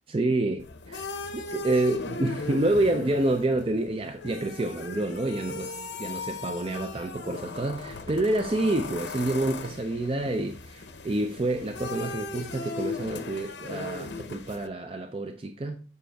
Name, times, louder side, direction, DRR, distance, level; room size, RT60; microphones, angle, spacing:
voice 1, 0.1-15.8, right 2 dB, 30° right, 0.4 m, -28 dB
sound 1, 0.6-14.7, left 3 dB, 75° left, 0.8 m, -38 dB
7.7 x 5.5 x 3.4 m
head